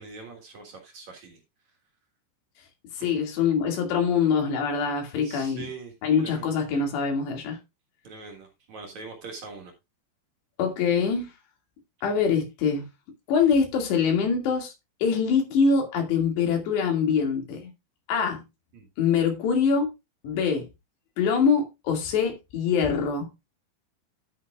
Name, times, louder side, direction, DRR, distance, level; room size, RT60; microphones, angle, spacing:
voice 1, 0.0-1.4 5.2-5.9 6.2-6.5 8.0-9.7 18.7-18.9, right 4 dB, 55° right, 2.5 m, -42 dB
voice 2, 3.0-5.7 6.0-7.6 10.6-11.3 12.0-12.8 13.3-14.7 15.0-17.7 18.1-18.4 19.0-19.9 20.2-20.7 21.2-23.3, left 6 dB, 85° left, 4.5 m, -24 dB
11.0 x 9.3 x 2.4 m
omnidirectional pair, 4.8 m